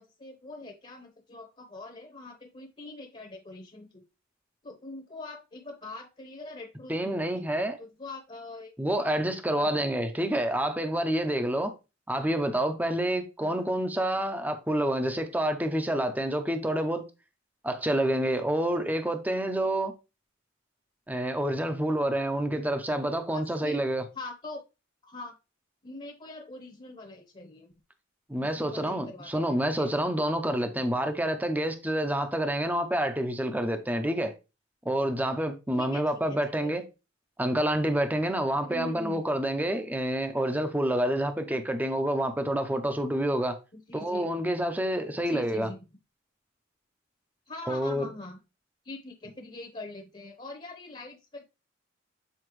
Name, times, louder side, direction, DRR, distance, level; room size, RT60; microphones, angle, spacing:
voice 1, 0.0-4.0 4.6-8.7 9.5-9.8 12.2-12.3 13.4-13.7 23.0-23.8 24.1-24.6 25.0-25.4 25.8-27.7 28.3-29.9 35.8-36.0 36.6-36.8 38.6-39.2 43.7-44.3 45.2-45.8 47.5-48.4 48.8-51.4, left 2 dB, 30° left, 1.0 m, -43 dB
voice 2, 6.9-7.8 8.8-11.7 12.1-17.0 17.6-19.9 21.1-24.0 28.3-34.3 34.8-36.8 37.4-43.6 43.9-45.7 47.7-48.1, right 1 dB, 10° right, 0.7 m, -28 dB
7.8 x 4.3 x 3.1 m
head